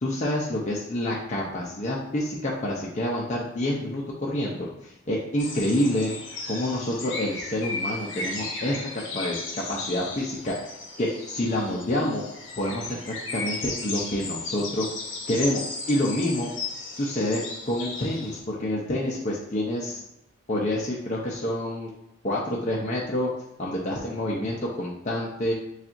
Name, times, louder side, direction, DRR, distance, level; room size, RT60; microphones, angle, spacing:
voice 1, 0.0-6.1 6.5-9.4 9.7-10.6 11.0-12.2 12.6-14.9 15.3-15.6 15.9-16.5 17.0-20.0 20.5-21.9 22.2-23.3 23.6-25.5, left 1 dB, 35° left, -4 dB, 0.6 m, -27 dB
sound 1, 5.4-18.4, left 3 dB, 65° left, 0.8 m, -35 dB
7.2 x 2.4 x 2.6 m, 0.86 s
head